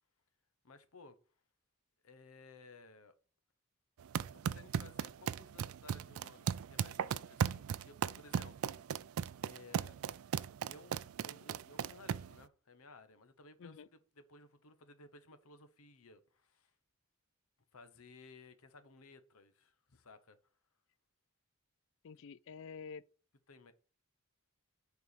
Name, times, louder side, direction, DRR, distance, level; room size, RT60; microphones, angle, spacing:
voice 1, 0.6-1.2 2.0-3.1 4.3-8.7 9.4-10.1 10.7-16.7 17.7-20.4 23.5-23.7, left 3 dB, 80° left, 1.0 m, -58 dB
sound 1, 4.0-12.4, right 8 dB, 75° right, 0.4 m, -37 dB
voice 2, 22.0-23.0, left 5 dB, 60° left, 0.4 m, -48 dB
6.8 x 4.6 x 6.7 m
head